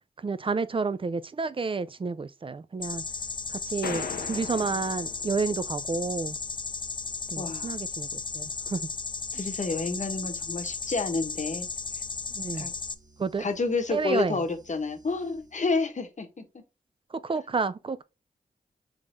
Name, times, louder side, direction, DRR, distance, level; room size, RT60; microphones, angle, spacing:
voice 1, 0.2-3.0 3.5-6.4 7.3-8.9 12.3-12.7 13.2-13.5 13.9-14.4 17.1-18.0, right 4 dB, 35° right, 0.4 m, -30 dB
sound 1, 2.8-12.9, left 4 dB, 30° left, 0.4 m, -35 dB
sound 2, 2.9-16.1, right 2 dB, 50° right, 1.2 m, -58 dB
sound 3, 3.8-5.8, left 6 dB, 80° left, 0.7 m, -38 dB
voice 2, 7.4-7.8 9.3-11.7 12.5-12.7 13.4-16.4, left 3 dB, 50° left, 1.0 m, -30 dB
3.6 x 3.2 x 3.8 m
cardioid pair, 45°, 16 cm